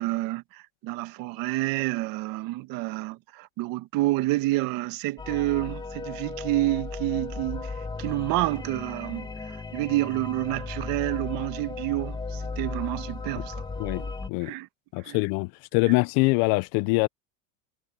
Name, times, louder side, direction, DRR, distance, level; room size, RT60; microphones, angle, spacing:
voice 1, 0.0-13.6 13.9-14.1 14.4-14.7 15.0-15.2, right 18 dB, 55° right, 1.6 m, -29 dB
sound 1, 5.2-14.3, left 4 dB, 10° left, 1.2 m, -36 dB
voice 2, 13.8-14.5 14.9-17.1, left 26 dB, 55° left, 0.6 m, -24 dB
supercardioid pair, 140°, 42 cm